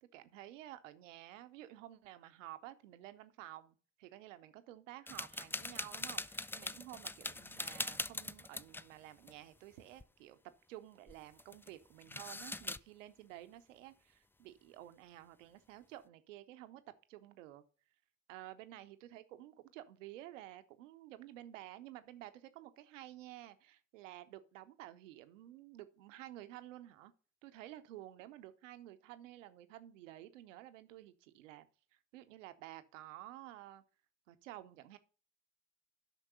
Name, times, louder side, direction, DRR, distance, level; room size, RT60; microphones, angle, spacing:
voice 1, 0.0-10.4 10.7-16.8 17.1-17.6 18.3-27.1 27.4-31.7 32.1-33.8 34.3-35.0, right 14 dB, 85° right, 0.7 m, -52 dB
sound 1, 5.1-8.9 9.2-9.3 9.7-10.0 11.1-11.7 12.0-12.8, left 2 dB, 5° left, 0.4 m, -42 dB
9.0 x 5.8 x 5.5 m
hypercardioid pair, 45°, 37 cm